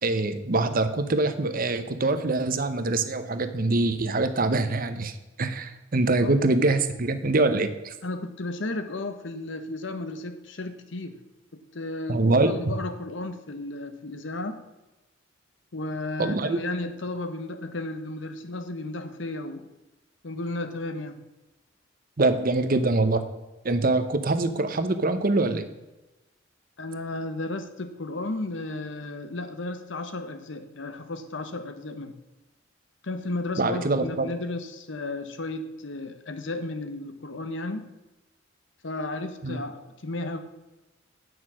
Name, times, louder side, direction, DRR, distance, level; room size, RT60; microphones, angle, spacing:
voice 1, 0.0-7.9 12.1-12.5 16.2-16.6 22.2-23.2 23.6-25.7 33.6-34.3 39.4-39.6, right 2 dB, 45° right, 10 dB, 0.9 m, -24 dB
voice 2, 8.0-11.2 11.7-14.6 15.7-19.7 20.2-21.2 26.8-32.1 33.0-37.9 38.8-40.4, left 2 dB, 70° left, 8 dB, 1.0 m, -34 dB
9.4 x 6.4 x 6.2 m, 1.0 s
head